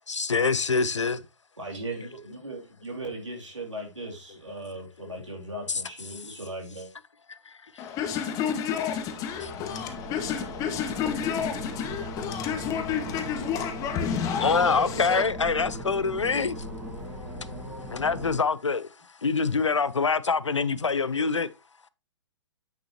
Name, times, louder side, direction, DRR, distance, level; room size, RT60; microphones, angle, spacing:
voice 1, 0.1-1.2 14.4-16.6 17.9-18.8 19.2-21.5, left 4 dB, 75° left, 0.6 m, -25 dB
voice 2, 1.6-6.9, right 2 dB, 80° right, 2.9 m, -38 dB
voice 3, 7.8-15.2, left 8 dB, 20° left, 1.3 m, -30 dB
sound 1, 8.7-18.4, equal, 10° right, 2.1 m, -39 dB
9.1 x 6.2 x 2.9 m
figure-of-eight pair, 120°, 15 cm